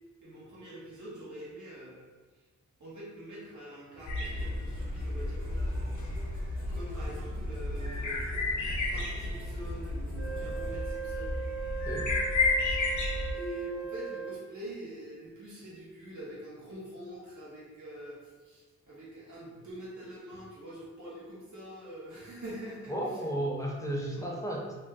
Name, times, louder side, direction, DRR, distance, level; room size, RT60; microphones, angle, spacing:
voice 1, 0.2-2.1 2.8-5.6 6.7-8.3 8.7-11.3 13.3-23.3 24.2-24.3, right 1 dB, 90° right, -7 dB, 1.1 m, -45 dB
sound 1, 3.9-10.8, right 1 dB, 30° right, 0.7 m, -47 dB
sound 2, 4.1-13.3, left 2 dB, 85° left, 0.6 m, -32 dB
Wind instrument woodwind instrument, 10.2-14.5, right 7 dB, 70° right, 0.6 m, -39 dB
voice 2, 22.9-24.7, right 1 dB, 10° left, -3 dB, 0.4 m, -33 dB
2.7 x 2.2 x 3.4 m, 1.3 s
wide cardioid pair, 125°, 29 cm